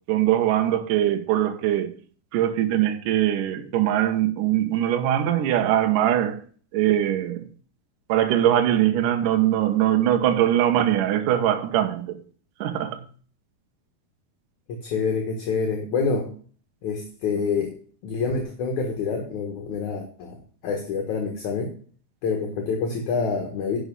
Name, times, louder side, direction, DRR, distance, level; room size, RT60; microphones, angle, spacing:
voice 1, 0.1-1.9 2.3-6.4 6.7-7.4 8.1-12.2 12.6-13.0, right 11 dB, 65° right, 2.4 m, -22 dB
voice 2, 14.7-16.3 16.8-17.8 18.0-20.4 20.6-21.7 22.2-23.8, left 5 dB, 55° left, 2.5 m, -27 dB
11.0 x 6.4 x 5.4 m
omnidirectional pair, 4.7 m